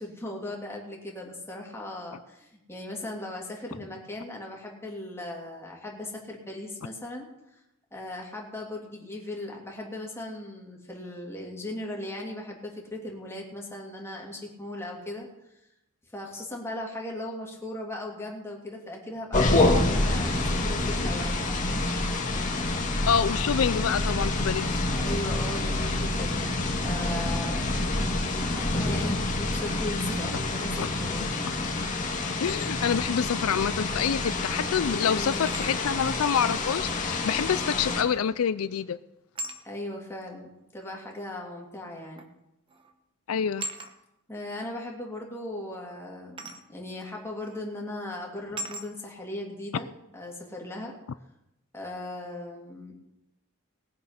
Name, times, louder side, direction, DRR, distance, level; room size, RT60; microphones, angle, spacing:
voice 1, 0.0-7.6 7.9-15.3 16.1-21.8 24.9-27.9 28.4-31.4 35.0-35.4 39.6-42.2 44.3-49.9 50.1-50.9 51.7-52.9, left 1 dB, 10° left, -1 dB, 2.8 m, -38 dB
sound 1, 19.3-38.0, left 2 dB, 40° left, 1.7 m, -27 dB
voice 2, 23.1-24.9 30.8-30.9 32.4-39.0 43.3-43.7, left 7 dB, 85° left, 14 dB, 0.4 m, -27 dB
sound 2, 32.2-32.7 34.2-34.3 35.5-35.9 38.1-38.5 39.4-39.6 40.8-40.9 42.2-42.4 42.7-42.9 43.6-43.9 46.4-46.6 47.4-47.6 48.6-48.9, right 1 dB, 25° right, 1.1 m, -38 dB
19.0 x 7.6 x 5.8 m, 0.90 s
head